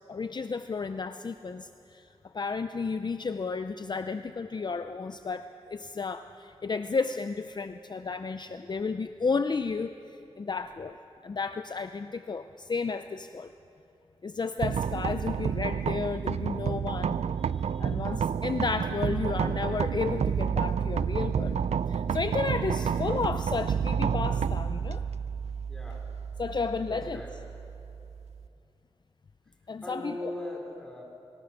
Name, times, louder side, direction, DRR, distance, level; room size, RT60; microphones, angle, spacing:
voice 1, 0.1-2.1 2.3-10.0 10.4-11.0 11.2-13.5 14.2-17.2 17.8-21.6 21.9-25.0 26.4-27.2 29.7-30.3, left 4 dB, 45° left, 9 dB, 0.5 m, -32 dB
sound 1, 14.6-28.5, right 7 dB, 85° right, 0.4 m, -30 dB
voice 2, 17.4-18.0 25.7-26.0 26.9-27.4 29.8-31.0, left 1 dB, 5° left, -1 dB, 4.4 m, -40 dB
25.0 x 18.0 x 6.1 m, 2.7 s
wide cardioid pair, 95°, 11 cm